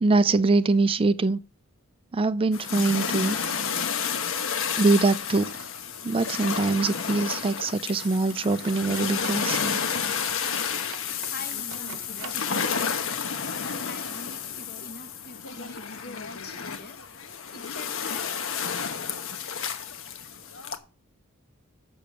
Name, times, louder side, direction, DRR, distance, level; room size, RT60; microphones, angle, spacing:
voice 1, 0.0-1.4 2.1-3.4 4.8-5.5 6.0-9.8, right 3 dB, 25° right, 0.4 m, -23 dB
sound 1, 2.5-20.8, left 6 dB, 70° left, 1.0 m, -31 dB
sound 2, 7.5-12.9, right 7 dB, 85° right, 0.8 m, -46 dB
voice 2, 11.2-13.0 13.5-17.1 17.5-18.4, left 2 dB, 50° left, 1.3 m, -44 dB
7.0 x 6.8 x 7.1 m
head